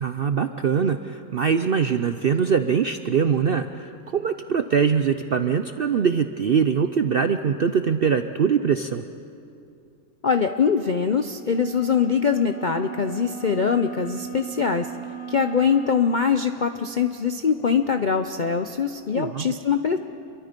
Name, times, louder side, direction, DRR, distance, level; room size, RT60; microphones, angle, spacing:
voice 1, 0.0-9.0 19.1-19.5, right 6 dB, 60° right, 9 dB, 0.5 m, -22 dB
voice 2, 10.2-14.9 15.3-20.0, left 6 dB, 60° left, 7 dB, 0.5 m, -23 dB
sound 1, 11.5-16.1, right 7 dB, 80° right, 2.5 m, -36 dB
28.0 x 23.0 x 5.2 m, 2.6 s
omnidirectional pair, 1.7 m